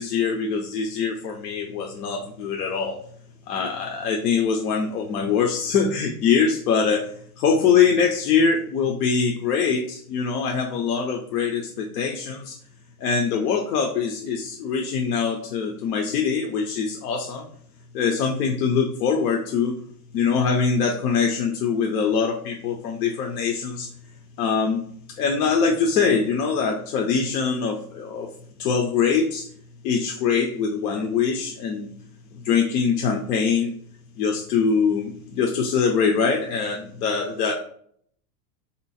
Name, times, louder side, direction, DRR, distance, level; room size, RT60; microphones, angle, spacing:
voice 1, 0.0-3.0 3.5-7.1 7.4-12.6 13.0-17.5 17.9-19.8 20.1-23.9 24.4-24.8 25.2-28.3 28.6-29.5 29.8-32.0 32.3-33.7 34.2-37.5, left 6 dB, 70° left, 1 dB, 0.8 m, -23 dB
3.5 x 2.9 x 4.2 m, 0.63 s
supercardioid pair, 175°, 47 cm